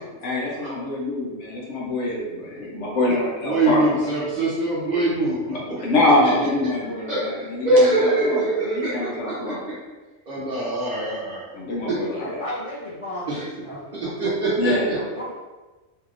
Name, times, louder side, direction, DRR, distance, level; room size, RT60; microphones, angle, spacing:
voice 1, 0.2-4.1 5.8-9.7 11.5-12.4 14.6-14.9, left 1 dB, 75° left, -4 dB, 1.1 m, -24 dB
voice 2, 3.4-5.9 7.1-9.8 10.3-11.5 11.9-12.0 13.3-13.5 13.9-15.0, right 2 dB, 40° right, -7 dB, 0.8 m, -23 dB
voice 3, 12.2-15.4, left 1 dB, 40° left, -9 dB, 0.6 m, -35 dB
3.1 x 2.8 x 2.5 m, 1.2 s
omnidirectional pair, 1.2 m